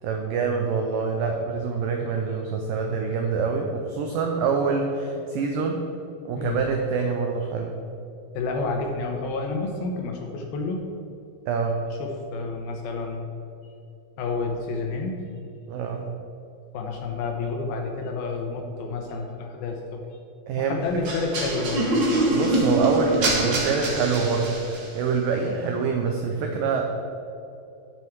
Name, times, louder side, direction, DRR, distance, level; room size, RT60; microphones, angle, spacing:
voice 1, 0.0-5.8 6.3-7.7 11.5-11.8 15.7-16.1 20.5-20.8 22.3-26.8, right 5 dB, 85° right, 2 dB, 1.9 m, -25 dB
voice 2, 6.3-6.7 8.3-10.9 11.9-13.2 14.2-15.2 16.7-20.0 20.6-21.9, left 3 dB, 75° left, 3 dB, 2.5 m, -30 dB
sound 1, 21.0-25.0, right 1 dB, 60° right, 1.2 m, -24 dB
9.7 x 7.7 x 4.6 m, 2.7 s
omnidirectional pair, 4.8 m